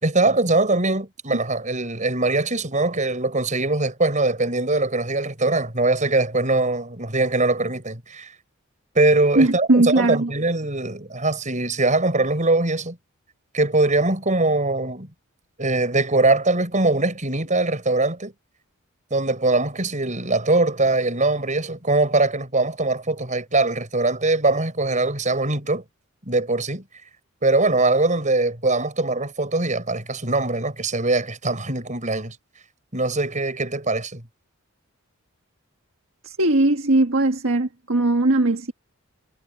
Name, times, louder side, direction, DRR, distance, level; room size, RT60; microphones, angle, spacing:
voice 1, 0.0-8.3 8.9-13.0 13.5-15.1 15.6-18.3 19.1-25.8 26.3-26.8 27.4-32.4 32.9-34.2, right 2 dB, 35° right, 6.0 m, -22 dB
voice 2, 9.3-10.3 36.2-38.7, right 2 dB, 65° right, 1.6 m, -19 dB
head